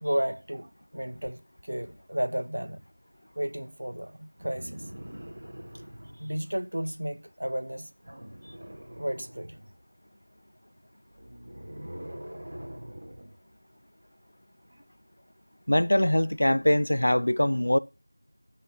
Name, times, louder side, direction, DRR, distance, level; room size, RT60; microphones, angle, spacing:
voice 1, 0.0-2.8 3.4-4.9 6.2-7.9 9.0-9.6, equal, 65° right, 0.9 m, -33 dB
sound 1, 4.4-6.4 8.0-9.8 11.1-13.4 14.7-14.8, equal, 20° right, 2.4 m, -43 dB
voice 2, 15.7-17.8, left 1 dB, 55° left, 0.5 m, -22 dB
10.0 x 6.5 x 5.5 m
figure-of-eight pair, 180°, 0 cm